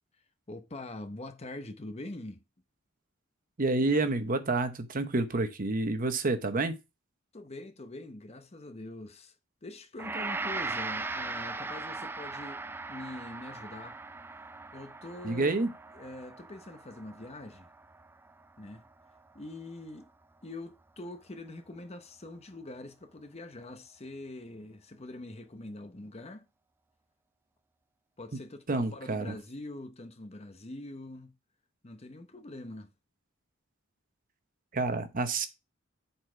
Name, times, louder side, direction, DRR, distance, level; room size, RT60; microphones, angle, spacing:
voice 1, 0.5-2.4 7.3-9.3 9.6-14.0 14.7-15.6 15.9-17.7 18.6-18.8 19.3-20.1 20.4-26.5 28.2-31.3 31.8-32.9, left 2 dB, 30° left, 0.9 m, -44 dB
voice 2, 3.6-6.8 15.2-15.7 28.7-29.4 34.7-35.5, right 2 dB, 45° right, 0.9 m, -28 dB
Gong, 10.0-19.2, right 3 dB, 10° right, 0.3 m, -39 dB
7.8 x 4.3 x 4.4 m
head